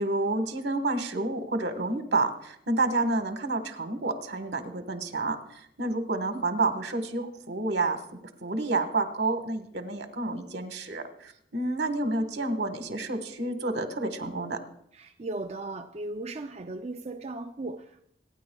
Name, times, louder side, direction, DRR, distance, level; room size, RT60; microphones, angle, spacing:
voice 1, 0.0-14.6, right 2 dB, 85° right, 1.4 m, -29 dB
voice 2, 14.9-18.0, right 2 dB, 35° right, 0.4 m, -37 dB
26.0 x 9.7 x 2.3 m
head